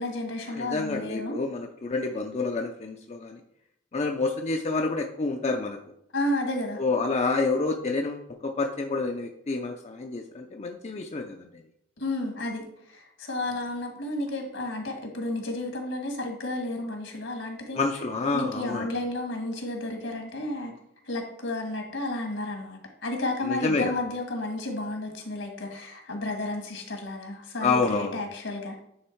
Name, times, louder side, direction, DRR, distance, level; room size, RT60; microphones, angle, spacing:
voice 1, 0.0-1.4 6.1-6.8 12.0-17.8 18.3-20.7 21.0-28.7, left 2 dB, 75° left, 4 dB, 1.6 m, -32 dB
voice 2, 0.5-3.4 3.9-5.8 6.8-11.5 17.7-18.9 23.4-24.0 27.6-28.2, left 3 dB, 35° left, 3 dB, 0.5 m, -28 dB
9.6 x 3.5 x 4.5 m, 0.76 s
head